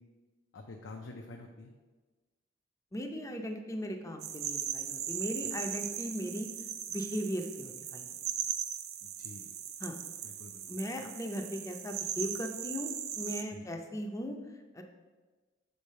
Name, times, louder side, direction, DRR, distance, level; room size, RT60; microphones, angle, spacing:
voice 1, 0.5-1.7 9.0-9.5 10.2-10.9 13.5-13.7, left 2 dB, 60° left, 2 dB, 0.5 m, -48 dB
voice 2, 2.9-6.5 6.9-8.1 9.8-10.0 10.7-12.9 13.1-14.4 14.7-14.8, equal, 15° left, 4 dB, 0.5 m, -38 dB
sound 1, 4.2-13.4, right 9 dB, 50° right, 0.4 m, -38 dB
6.9 x 3.3 x 5.4 m, 1.3 s
head